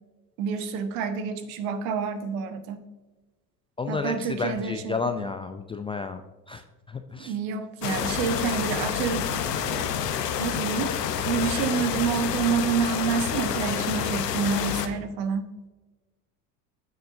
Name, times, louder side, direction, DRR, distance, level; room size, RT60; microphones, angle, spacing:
voice 1, 0.4-2.8 3.9-5.3 7.2-9.9 10.4-11.0 11.2-15.5, right 6 dB, 60° right, 9 dB, 1.3 m, -28 dB
voice 2, 3.8-6.2 6.5-7.3, left 4 dB, 15° left, 7 dB, 0.3 m, -31 dB
sound 1, 7.8-14.9, left 8 dB, 80° left, 1.0 m, -28 dB
15.5 x 6.4 x 2.7 m, 1.2 s
hypercardioid pair, 75°, 47 cm